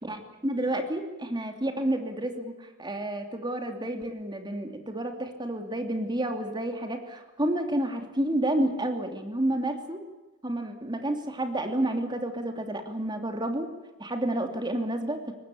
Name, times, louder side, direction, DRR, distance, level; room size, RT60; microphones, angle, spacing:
voice 1, 0.0-2.5 2.8-10.0 10.4-13.7 14.0-15.3, right 1 dB, 20° right, 5 dB, 2.9 m, -30 dB
23.5 x 19.5 x 8.7 m, 1.1 s
head